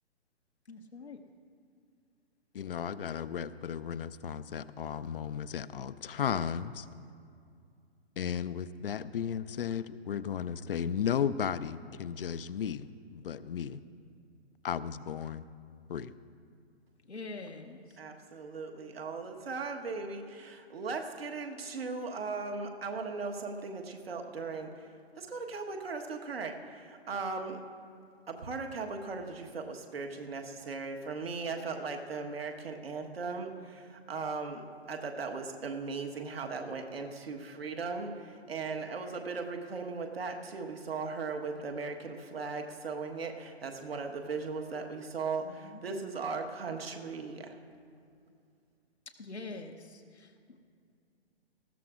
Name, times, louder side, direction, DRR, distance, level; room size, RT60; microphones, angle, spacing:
voice 1, 0.7-1.2 17.1-18.0 45.4-46.2 49.1-50.6, left 3 dB, 90° left, 2 dB, 0.9 m, -45 dB
voice 2, 2.5-6.8 8.2-12.9 13.1-13.8 14.6-15.4 15.9-16.1, left 8 dB, 60° left, 15 dB, 0.5 m, -34 dB
voice 3, 18.0-24.9 25.2-27.6 28.3-47.6, right 4 dB, 65° right, 3 dB, 1.4 m, -38 dB
19.5 x 14.5 x 2.5 m, 2.3 s
figure-of-eight pair, 130°, 32 cm